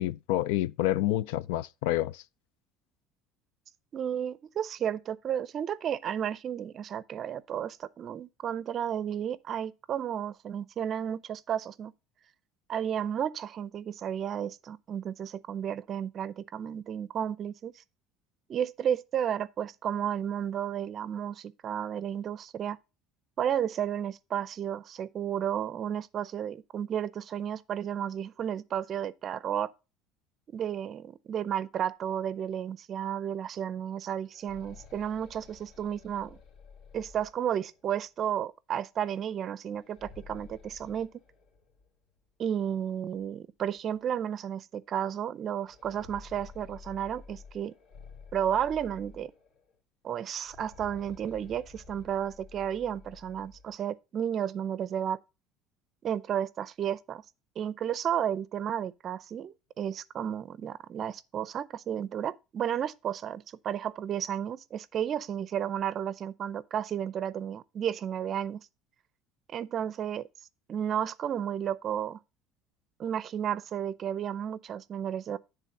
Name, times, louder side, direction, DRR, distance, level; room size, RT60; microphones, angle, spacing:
voice 1, 0.0-2.2, left 14 dB, 85° left, 0.4 m, -28 dB
voice 2, 3.9-11.9 12.7-17.8 18.5-22.8 23.4-29.7 30.5-36.4 36.9-41.1 42.4-47.7 48.3-49.3 50.0-55.2 56.0-57.2 57.6-68.7 69.5-70.3 70.7-72.2 73.0-75.4, right 9 dB, 35° right, 0.5 m, -32 dB
sound 1, 34.2-37.9 39.7-41.9 42.2-42.3 43.2-43.3 43.8-43.9 45.5-49.7 50.4-53.8, left 5 dB, 65° left, 2.1 m, -51 dB
10.0 x 3.5 x 5.5 m
cardioid pair, 145°, 0 cm